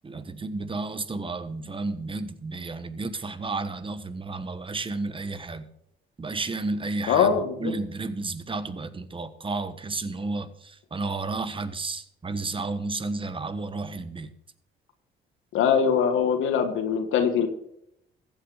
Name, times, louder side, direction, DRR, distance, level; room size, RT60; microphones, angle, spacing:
voice 1, 0.0-5.7 6.2-7.3 7.6-14.3, right 3 dB, 25° right, 1.3 m, -32 dB
voice 2, 7.1-7.7 15.5-17.5, left 7 dB, 85° left, 1.6 m, -22 dB
15.0 x 8.5 x 5.0 m
cardioid pair, 90°, 20 cm